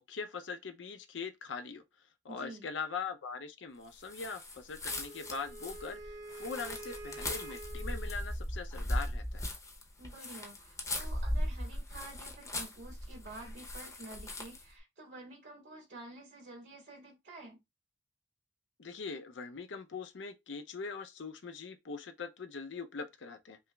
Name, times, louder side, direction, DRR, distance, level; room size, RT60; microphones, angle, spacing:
voice 1, 0.0-1.8 2.2-6.0 6.3-9.4 18.8-23.6, left 5 dB, 75° left, 0.6 m, -42 dB
voice 2, 2.3-2.7 10.0-17.6, right 2 dB, 75° right, 2.4 m, -50 dB
sound 1, 4.0-14.7, left 1 dB, 15° left, 0.6 m, -38 dB
Wind instrument woodwind instrument, 4.9-8.1, right 2 dB, 50° right, 1.0 m, -47 dB
5.4 x 2.0 x 2.3 m
head